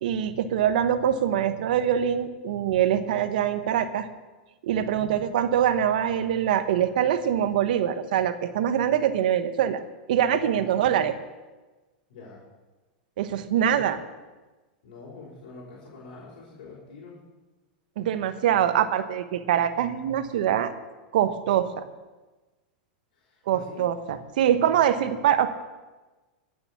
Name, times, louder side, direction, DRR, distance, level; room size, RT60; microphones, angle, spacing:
voice 1, 0.0-4.1 4.6-9.8 10.1-11.2 13.2-14.0 18.0-20.7 21.1-21.8 23.5-25.5, right 10 dB, 70° right, 11 dB, 1.1 m, -24 dB
voice 2, 4.9-5.3 10.4-10.6 12.1-12.4 13.6-13.9 14.8-17.2 23.1-23.8, left 4 dB, 70° left, -6 dB, 4.3 m, -45 dB
16.0 x 6.9 x 7.1 m, 1.2 s
hypercardioid pair, 115°, 5 cm